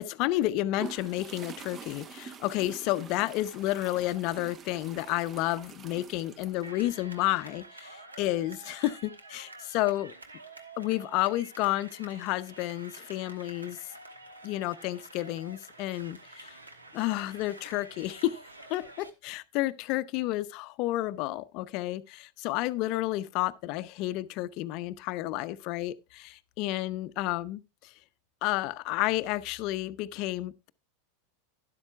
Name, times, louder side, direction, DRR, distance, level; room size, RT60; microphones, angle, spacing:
voice 1, 0.0-10.1 10.8-13.8 14.4-16.6 16.9-27.9 28.4-30.7, left 16 dB, 50° left, 0.5 m, -31 dB
sound 1, 0.8-6.7, right 6 dB, 30° right, 0.7 m, -46 dB
sound 2, 6.6-19.1, right 2 dB, 85° right, 1.1 m, -49 dB
12.5 x 10.5 x 2.2 m
figure-of-eight pair, 90°, 0 cm